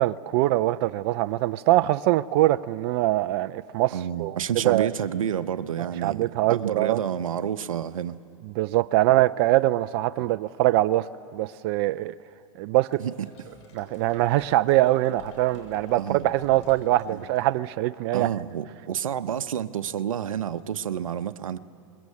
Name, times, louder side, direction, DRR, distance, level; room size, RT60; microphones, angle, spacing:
voice 1, 0.0-4.4 4.6-4.9 5.8-7.0 8.6-11.1 11.3-12.2 12.6-13.0 13.7-18.3, right 16 dB, 50° right, 0.5 m, -23 dB
voice 2, 3.9-6.2 6.5-8.2 13.0-13.3 16.0-16.3 17.1-17.2 18.1-21.6, right 9 dB, 90° right, 0.9 m, -29 dB
sound 1, 12.9-17.8, left 3 dB, 65° left, 7.7 m, -50 dB
26.0 x 22.0 x 8.5 m
hypercardioid pair, 120°, 17 cm